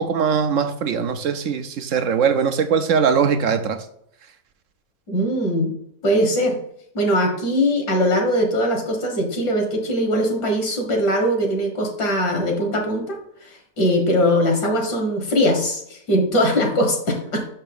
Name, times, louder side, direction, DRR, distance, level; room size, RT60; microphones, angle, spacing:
voice 1, 0.0-3.8, right 6 dB, 70° right, 0.8 m, -21 dB
voice 2, 5.1-5.7 6.0-6.6 7.0-17.4, equal, 75° left, 2.0 m, -21 dB
6.0 x 5.5 x 5.4 m
omnidirectional pair, 1.8 m